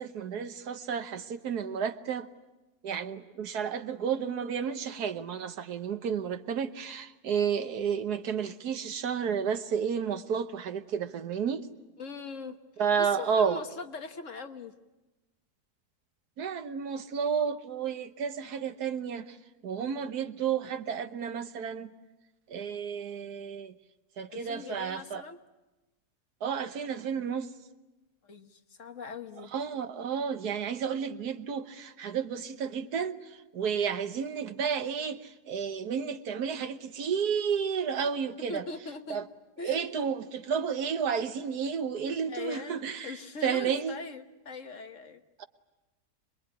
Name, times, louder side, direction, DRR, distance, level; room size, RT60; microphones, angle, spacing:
voice 1, 0.0-2.3 2.8-11.7 12.8-13.6 16.4-19.4 19.6-21.9 22.5-23.8 24.2-25.2 26.4-27.5 29.5-38.6 39.1-39.2 39.6-44.0 45.4-45.5, right 7 dB, 80° right, 1.6 m, -31 dB
voice 2, 12.0-14.7 24.3-25.4 28.2-29.5 38.5-39.2 39.6-40.0 42.3-42.8 43.0-45.2, left 3 dB, 50° left, 1.6 m, -41 dB
26.0 x 21.5 x 9.7 m
omnidirectional pair, 1.7 m